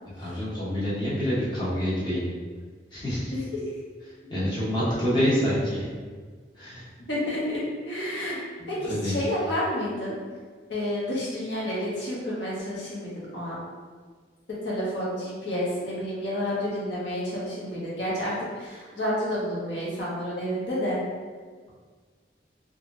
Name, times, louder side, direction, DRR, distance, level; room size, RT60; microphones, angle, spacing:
voice 1, 0.2-2.2 2.9-3.3 4.3-5.9 6.5-6.9 8.6-9.2, equal, 25° left, -9 dB, 0.9 m, -27 dB
voice 2, 7.1-7.6 7.8-8.4 8.7-10.2 10.7-13.6 14.6-21.0, equal, 80° left, -7 dB, 1.0 m, -30 dB
3.0 x 2.4 x 2.6 m, 1.5 s
head